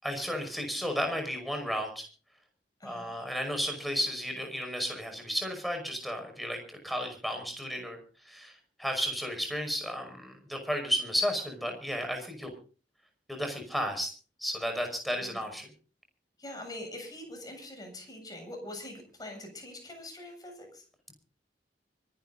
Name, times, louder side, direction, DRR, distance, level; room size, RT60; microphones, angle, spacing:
voice 1, 0.0-2.1 2.8-8.0 8.3-12.5 13.3-14.1 14.4-15.7, equal, ahead, 4 dB, 5.6 m, -33 dB
voice 2, 2.8-3.2 15.2-15.5 16.4-20.8, left 1 dB, 25° left, 3 dB, 7.4 m, -44 dB
24.5 x 11.5 x 4.0 m, 0.39 s
head